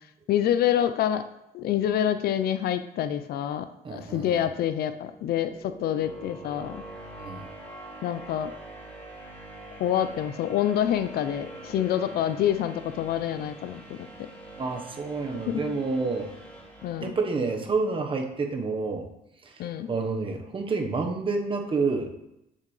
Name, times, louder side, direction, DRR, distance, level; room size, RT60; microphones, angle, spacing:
voice 1, 0.3-1.2 1.5-6.8 8.0-8.5 9.7-14.3 15.5-15.6 16.8-17.1 19.6-19.9, left 10 dB, 65° left, 10 dB, 0.6 m, -27 dB
voice 2, 3.8-4.5 7.2-7.5 14.6-16.3 17.0-19.1 19.4-22.1, right 4 dB, 30° right, 3 dB, 1.2 m, -29 dB
sound 1, 4.8-17.8, right 2 dB, 10° left, 2.8 m, -45 dB
9.5 x 7.3 x 3.3 m, 0.86 s
cardioid pair, 110°, 17 cm